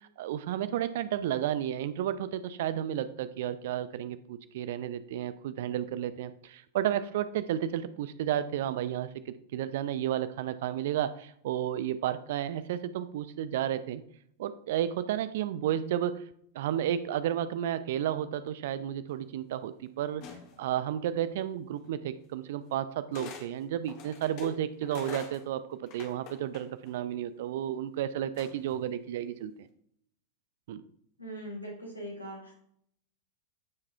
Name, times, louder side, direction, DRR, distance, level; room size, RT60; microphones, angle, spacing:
voice 1, 0.0-14.0 14.4-16.2 16.5-20.2 20.6-29.7 30.7-30.8, right 11 dB, 55° right, 14 dB, 0.6 m, -32 dB
sound 1, 20.2-20.7 21.8-21.9 23.1-23.5 23.8-27.0 28.4-28.8, left 7 dB, 45° left, 1.6 m, -44 dB
voice 2, 31.2-32.6, equal, 90° left, -1 dB, 2.6 m, -41 dB
14.5 x 4.9 x 3.4 m, 0.69 s
figure-of-eight pair, 90°, 0 cm